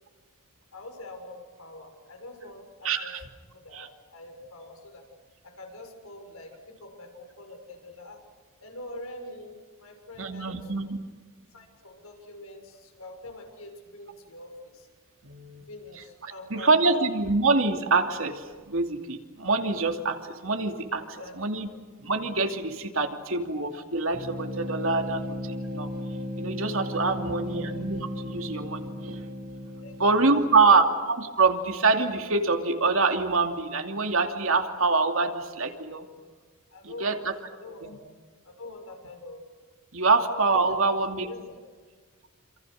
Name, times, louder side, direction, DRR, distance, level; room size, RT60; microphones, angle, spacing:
voice 1, 0.7-3.1 3.4-5.0 5.4-8.2 8.6-10.9 11.5-14.9 15.7-17.0 21.0-21.3 25.0-25.1 27.1-27.6 29.8-30.7 35.2-35.3 36.7-37.9 38.4-39.4 40.3-41.4, left 2 dB, 85° left, 3 dB, 6.8 m, -44 dB
voice 2, 2.8-3.2 3.7-3.9 10.2-10.9 15.2-15.6 16.2-20.2 20.4-21.7 22.0-25.2 25.7-25.9 26.4-29.3 30.0-36.1 36.8-37.3 37.8-37.9 39.9-41.3, right 3 dB, 70° right, 4 dB, 2.7 m, -25 dB
sound 1, 24.1-30.8, left 1 dB, 50° right, 5.2 m, -36 dB
28.0 x 28.0 x 6.6 m, 1.5 s
head